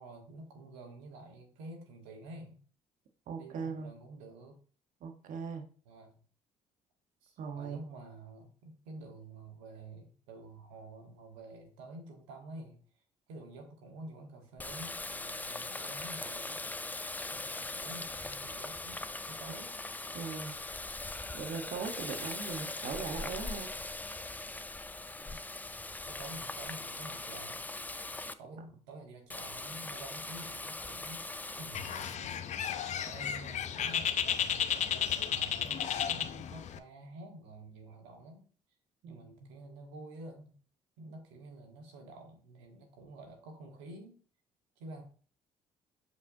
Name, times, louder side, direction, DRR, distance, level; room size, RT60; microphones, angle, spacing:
voice 1, 0.0-2.6 3.4-4.6 5.8-6.1 7.2-12.8 13.3-16.7 17.2-19.8 25.2-25.4 26.1-27.6 28.4-32.5 32.9-38.5 39.1-40.5 41.0-44.2 44.8-45.0, right 2 dB, 90° right, 2 dB, 1.5 m, -49 dB
voice 2, 3.3-3.9 5.0-5.7 7.4-7.8 20.1-20.6 21.3-23.7 39.0-39.5, right 5 dB, 65° right, 5 dB, 1.2 m, -40 dB
Water tap faucet, 14.6-28.3 29.3-32.2, left 2 dB, 10° left, 0.4 m, -41 dB
Bird, 31.7-36.8, left 8 dB, 55° left, 0.6 m, -33 dB
6.6 x 5.3 x 2.7 m, 0.41 s
hypercardioid pair, 60°, 14 cm